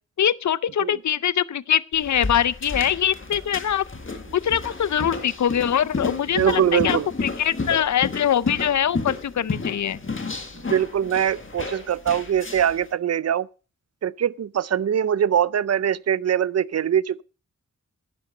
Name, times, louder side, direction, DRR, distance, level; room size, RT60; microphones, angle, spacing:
voice 1, 0.2-3.8 4.3-10.0, left 9 dB, 70° left, 0.5 m, -23 dB
sound 1, 1.9-12.8, left 3 dB, 45° left, 1.8 m, -32 dB
voice 2, 6.4-7.1 10.7-13.5 14.0-17.2, right 9 dB, 55° right, 0.5 m, -22 dB
11.5 x 9.8 x 5.4 m
wide cardioid pair, 95°, 30 cm